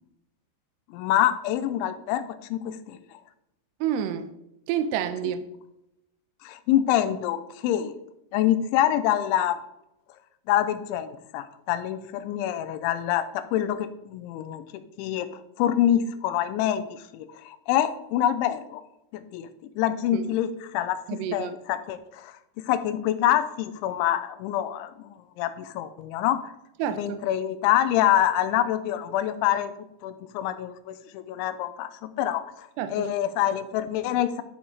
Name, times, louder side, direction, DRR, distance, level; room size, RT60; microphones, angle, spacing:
voice 1, 0.9-2.2 2.5-3.0 5.2-5.3 6.4-7.9 8.3-9.6 10.5-14.6 15.0-15.3 15.6-18.8 19.1-19.5 19.8-22.3 22.6-26.4 27.0-29.7 30.0-34.4, left 11 dB, 90° left, 11 dB, 3.2 m, -26 dB
voice 2, 3.8-4.3 4.7-5.5 20.1-20.3 21.1-21.6 26.8-27.2 32.8-33.1, right 9 dB, 80° right, 10 dB, 2.6 m, -28 dB
12.0 x 7.1 x 4.9 m, 0.86 s
omnidirectional pair, 5.2 m